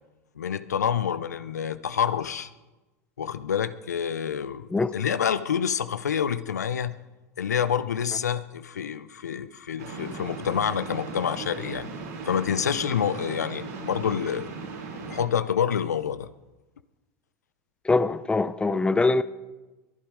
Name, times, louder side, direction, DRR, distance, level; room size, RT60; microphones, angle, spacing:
voice 1, 0.4-2.5 3.2-7.0 7.4-11.9 12.3-14.5 15.1-16.3, left 8 dB, 85° left, 0.8 m, -27 dB
sound 1, 9.8-15.2, right 4 dB, 70° right, 5.5 m, -37 dB
voice 2, 17.8-19.2, left 3 dB, 10° left, 0.7 m, -23 dB
22.5 x 10.5 x 4.9 m
hypercardioid pair, 85°, 9 cm